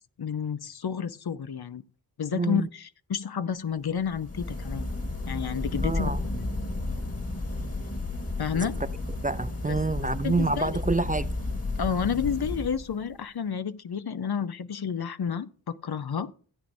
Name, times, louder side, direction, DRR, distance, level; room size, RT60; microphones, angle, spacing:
voice 1, 0.2-1.8 2.2-4.9 5.3-6.1 8.4-8.8 9.7-9.8 10.2-10.7 11.8-16.3, left 7 dB, 65° left, 0.7 m, -30 dB
voice 2, 2.3-2.7 5.8-6.2 8.5-8.7 9.2-11.3, right 3 dB, 20° right, 0.4 m, -27 dB
sound 1, 4.0-13.1, left 2 dB, 35° left, 1.8 m, -32 dB
16.0 x 8.6 x 2.7 m
cardioid pair, 40°, 40 cm